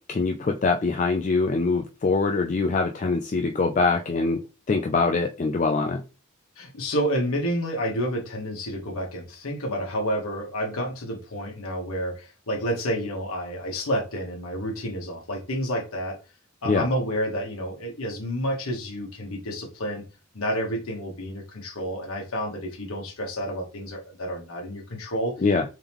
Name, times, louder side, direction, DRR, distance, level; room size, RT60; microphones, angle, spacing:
voice 1, 0.1-4.4 4.7-6.0 16.7-16.9 25.4-25.6, left 4 dB, 35° left, 3 dB, 0.3 m, -23 dB
voice 2, 6.6-16.2 16.6-20.0 20.3-25.4, equal, 75° left, 1 dB, 1.2 m, -29 dB
3.6 x 3.5 x 3.0 m, 0.31 s
head